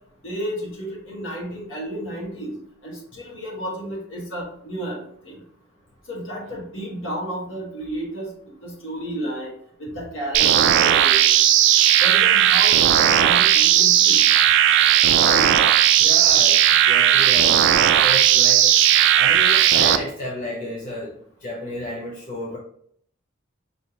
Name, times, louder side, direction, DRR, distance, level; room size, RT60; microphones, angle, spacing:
voice 1, 0.2-2.6 2.8-5.4 6.1-8.3 8.6-9.5 9.8-11.3 12.0-14.2 15.2-15.5 16.2-16.3, right 1 dB, 65° left, -2 dB, 1.5 m, -32 dB
sound 1, 10.3-20.0, right 10 dB, 60° right, 0.3 m, -16 dB
voice 2, 16.0-17.6 18.0-21.1 21.4-22.6, left 1 dB, 40° left, -3 dB, 0.6 m, -32 dB
5.3 x 2.7 x 2.9 m, 0.65 s
head